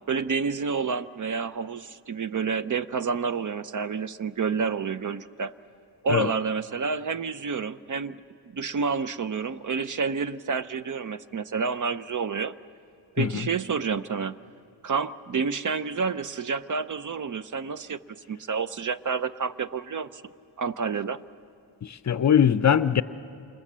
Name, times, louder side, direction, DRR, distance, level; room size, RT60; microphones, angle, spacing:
voice 1, 0.1-5.5 6.0-8.2 8.5-12.5 13.1-14.4 14.8-18.0 18.3-20.2 20.6-21.2, right 5 dB, 45° right, 0.6 m, -29 dB
voice 2, 21.8-23.0, left 8 dB, 40° left, 0.6 m, -21 dB
28.0 x 27.5 x 7.4 m
wide cardioid pair, 115°, 44 cm